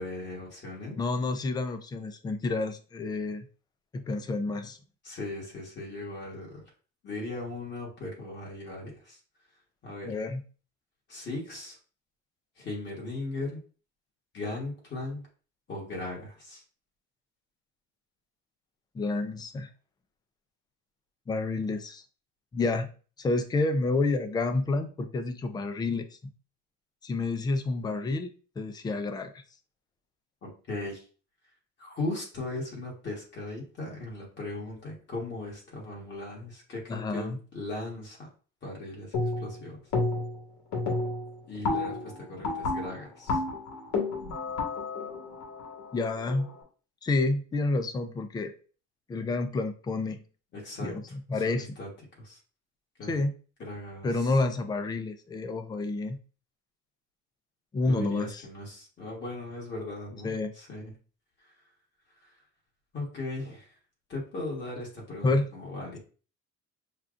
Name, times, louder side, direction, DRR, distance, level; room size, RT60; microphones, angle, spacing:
voice 1, 0.0-1.0 5.0-6.6 7.0-9.2 9.8-10.2 11.1-11.8 12.6-13.6 14.3-15.2 15.7-16.6 30.4-31.0 31.8-38.3 38.6-39.8 41.5-43.4 50.5-51.9 52.2-52.4 53.0-53.2 53.6-54.3 57.9-60.9 61.4-61.5 62.2-62.4 62.9-63.7 64.1-66.0, left 2 dB, 35° left, -3 dB, 1.5 m, -38 dB
voice 2, 1.0-3.5 3.9-4.8 10.1-10.4 18.9-19.7 21.3-22.0 22.5-22.9 23.2-26.1 27.0-28.3 28.6-29.3 36.9-37.4 45.9-46.5 47.0-48.5 49.1-50.2 50.8-51.0 51.3-51.7 53.1-53.3 54.0-56.2 57.7-58.4 60.2-60.5 65.2-65.5, left 3 dB, 15° left, 8 dB, 0.3 m, -29 dB
sound 1, 39.1-39.6 39.9-40.4 40.7-46.5, left 3 dB, 75° left, 1.6 m, -31 dB
5.7 x 2.3 x 2.5 m, 0.38 s
cardioid pair, 145°, 30 cm